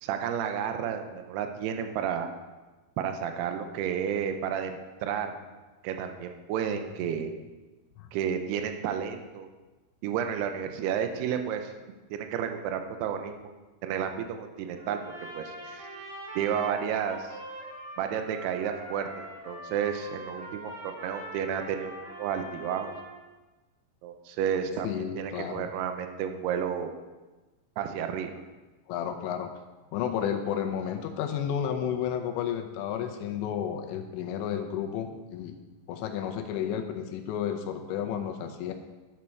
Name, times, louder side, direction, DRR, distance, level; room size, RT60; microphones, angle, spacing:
voice 1, 0.0-2.3 3.0-5.4 5.8-7.3 8.1-9.5 10.0-11.7 12.1-13.5 13.8-15.9 16.4-17.4 18.0-22.9 24.0-24.9 25.2-27.0 27.8-28.4, right 8 dB, 80° right, 6 dB, 2.5 m, -31 dB
Trumpet, 14.8-23.1, right 1 dB, 45° right, 2.8 m, -43 dB
voice 2, 24.8-25.7 28.9-29.5 29.9-35.6 35.9-38.7, left 9 dB, 80° left, 5 dB, 3.0 m, -32 dB
12.5 x 7.4 x 4.5 m, 1.2 s
omnidirectional pair, 5.3 m